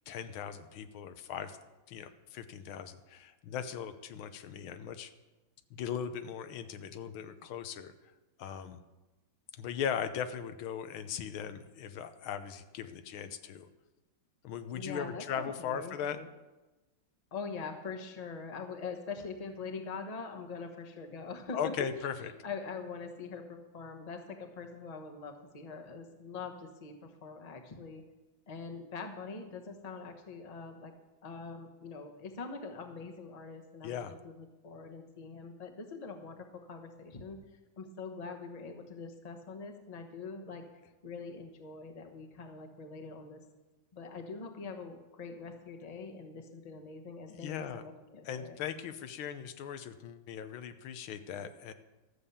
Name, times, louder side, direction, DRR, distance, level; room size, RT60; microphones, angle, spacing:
voice 1, 0.1-1.6 1.9-5.1 5.7-7.9 8.4-8.8 9.6-13.7 14.4-16.2 21.5-22.3 33.8-34.1 47.3-47.8 48.2-51.7, left 8 dB, 85° left, 10 dB, 1.6 m, -39 dB
voice 2, 14.7-16.3 17.3-21.7 22.2-28.0 28.5-30.9 31.2-37.4 37.8-40.6 41.0-43.4 43.9-48.6, left 4 dB, 25° left, 5 dB, 0.9 m, -43 dB
13.5 x 7.2 x 7.0 m, 1.1 s
omnidirectional pair, 2.2 m